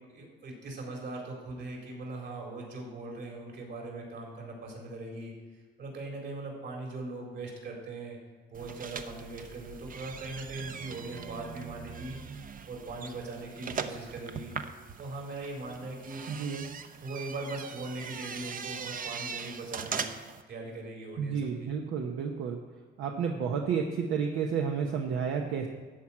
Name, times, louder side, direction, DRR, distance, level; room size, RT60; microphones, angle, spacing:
voice 1, 0.1-5.3 5.8-8.2 8.5-12.2 12.7-14.6 15.0-16.2 17.0-20.1 20.5-21.7, right 2 dB, 65° right, -1 dB, 4.0 m, -40 dB
sound 1, 8.5-20.4, right 6 dB, 45° right, 0.8 m, -41 dB
voice 2, 16.3-16.6 21.2-22.6 23.0-25.7, right 6 dB, 85° right, 2 dB, 1.0 m, -31 dB
13.5 x 4.7 x 8.6 m, 1.4 s
cardioid pair, 90°, 20 cm